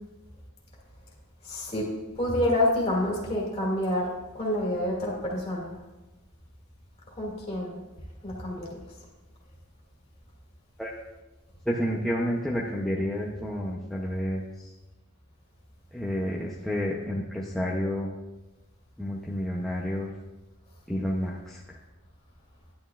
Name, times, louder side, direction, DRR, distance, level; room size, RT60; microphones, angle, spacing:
voice 1, 1.4-1.9 2.2-5.8 7.1-7.8 8.2-8.8, left 1 dB, 30° left, -2 dB, 2.2 m, -28 dB
voice 2, 11.7-14.7 15.9-18.1 19.0-20.1 20.9-21.8, equal, ahead, -4 dB, 0.6 m, -30 dB
10.5 x 9.5 x 2.4 m, 1.1 s
head